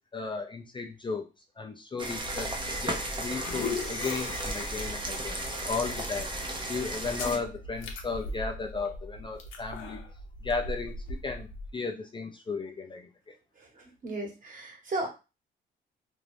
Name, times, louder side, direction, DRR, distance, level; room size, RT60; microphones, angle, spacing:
voice 1, 0.1-1.3 1.6-2.5 2.8-5.4 5.7-6.3 6.7-10.0 10.4-11.5 11.7-13.3, left 4 dB, 25° left, 3 dB, 0.5 m, -35 dB
sound 1, 2.0-7.4, right 1 dB, 25° right, 0.7 m, -35 dB
sound 2, 2.2-11.7, left 3 dB, 75° left, 0.7 m, -40 dB
voice 2, 14.0-15.1, right 2 dB, 45° right, 1 dB, 1.3 m, -34 dB
2.6 x 2.4 x 3.3 m, 0.29 s
cardioid pair, 90°, 20 cm